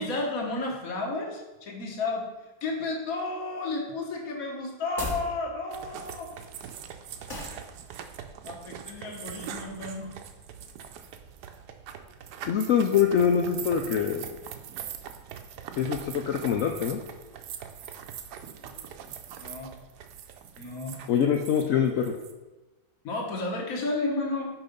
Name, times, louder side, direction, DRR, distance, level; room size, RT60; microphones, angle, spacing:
voice 1, 0.0-2.3 2.6-6.3 7.4-7.6 8.4-10.2 18.6-18.8 19.4-19.7 20.6-21.0 23.0-24.5, left 2 dB, 50° left, 1 dB, 1.6 m, -32 dB
sound 1, 4.8-5.3 7.3-7.6, left 1 dB, 30° left, 1.5 m, -34 dB
sound 2, 5.7-22.3, right 8 dB, 70° right, 1.1 m, -42 dB
voice 2, 12.5-14.3 15.8-17.0 21.1-22.1, left 8 dB, 85° left, 4 dB, 0.7 m, -24 dB
6.0 x 5.4 x 5.1 m, 1.1 s
omnidirectional pair, 2.0 m